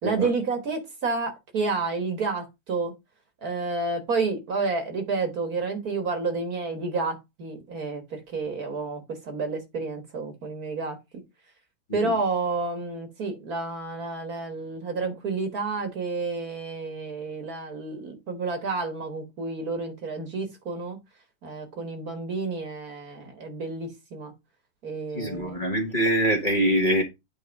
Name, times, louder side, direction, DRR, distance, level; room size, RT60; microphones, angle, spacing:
voice 1, 0.0-2.9 3.4-11.0 11.9-21.0 21.4-24.3 24.8-25.6, right 3 dB, 50° right, 1.8 m, -30 dB
voice 2, 25.1-27.0, right 1 dB, 25° left, 1.5 m, -24 dB
8.6 x 3.8 x 5.1 m
omnidirectional pair, 2.1 m